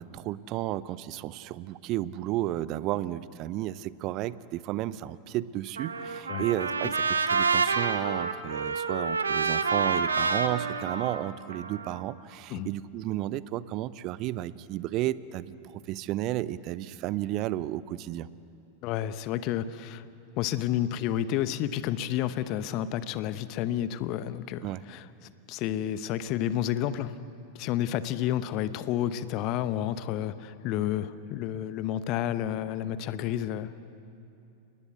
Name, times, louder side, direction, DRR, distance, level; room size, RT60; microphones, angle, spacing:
voice 1, 0.0-18.3 24.6-24.8, right 14 dB, 40° right, 18 dB, 0.7 m, -33 dB
Trumpet, 5.8-12.0, right 4 dB, 75° right, 1.2 m, -28 dB
voice 2, 18.8-20.0 20.4-25.1 25.5-27.1 27.5-33.8, left 11 dB, 40° left, 14 dB, 0.9 m, -30 dB
29.5 x 19.5 x 8.2 m, 2.7 s
figure-of-eight pair, 90°, 0 cm